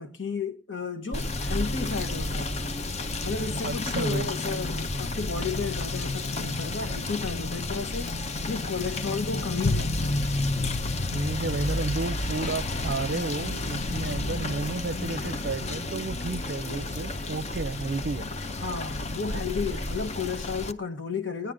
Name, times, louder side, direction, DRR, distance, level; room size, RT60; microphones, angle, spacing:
voice 1, 0.0-2.6 3.2-8.2 8.5-10.3 18.6-21.5, left 4 dB, 75° left, 1.4 m, -33 dB
Rain / Motor vehicle (road), 1.1-20.7, left 2 dB, 35° left, 0.6 m, -31 dB
voice 2, 3.6-4.3 11.1-18.2, right 3 dB, 60° right, 0.5 m, -32 dB
18.0 x 10.5 x 3.7 m
head